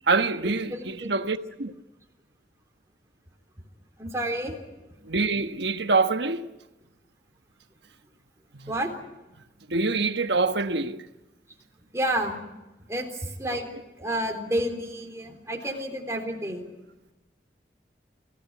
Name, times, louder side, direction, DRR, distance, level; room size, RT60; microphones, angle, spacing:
voice 1, 0.1-1.7 5.1-6.4 8.6-8.7 9.7-11.0 13.5-13.6, right 3 dB, 75° right, 1.2 m, -25 dB
voice 2, 0.7-1.1 4.0-4.6 4.9-5.0 8.7-8.9 11.9-12.4 12.9-13.7 14.0-16.7, right 1 dB, 15° right, 3.7 m, -30 dB
27.5 x 16.5 x 9.4 m
head